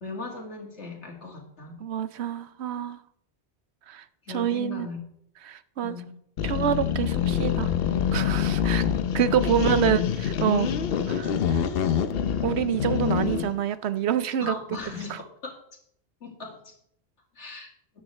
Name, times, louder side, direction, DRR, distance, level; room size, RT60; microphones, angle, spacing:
voice 1, 0.0-1.8 4.2-5.0 5.8-6.1 8.7-8.8 9.5-10.0 11.0-11.1 14.4-15.6 16.2-16.7 17.4-17.7, left 4 dB, 75° left, 2.4 m, -38 dB
voice 2, 1.8-3.0 3.9-4.0 4.3-4.9 5.4-6.0 6.4-7.7 8.1-8.8 9.1-10.7 11.1-11.3 12.4-14.5 15.1-15.2, right 9 dB, 70° right, 0.9 m, -26 dB
sound 1, 6.4-13.6, left 8 dB, 60° left, 0.8 m, -26 dB
13.5 x 9.8 x 3.2 m
omnidirectional pair, 1.2 m